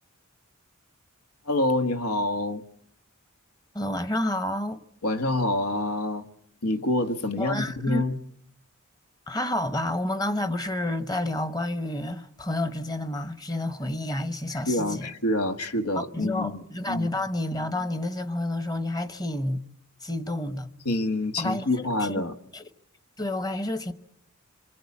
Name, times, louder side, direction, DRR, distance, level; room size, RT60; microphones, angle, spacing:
voice 1, 1.5-2.6 5.0-6.3 6.6-8.2 14.5-17.1 20.8-22.3, left 1 dB, 85° left, 1.6 m, -27 dB
voice 2, 3.7-4.8 7.4-8.0 9.3-15.1 16.0-19.6 20.0-20.7 21.4-22.2 22.5-22.7 23.2-23.9, left 1 dB, 20° left, 1.0 m, -29 dB
27.0 x 22.5 x 8.5 m
head